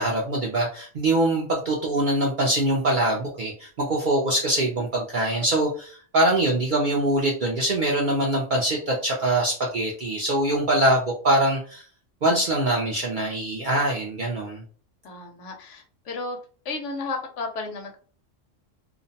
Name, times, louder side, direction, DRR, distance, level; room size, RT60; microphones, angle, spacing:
voice 1, 0.0-11.8 12.2-14.6, right 1 dB, 60° right, -2 dB, 0.5 m, -23 dB
voice 2, 15.0-16.4 16.6-18.0, left 3 dB, 70° left, 3 dB, 0.9 m, -33 dB
2.5 x 2.0 x 2.7 m, 0.41 s
omnidirectional pair, 1.4 m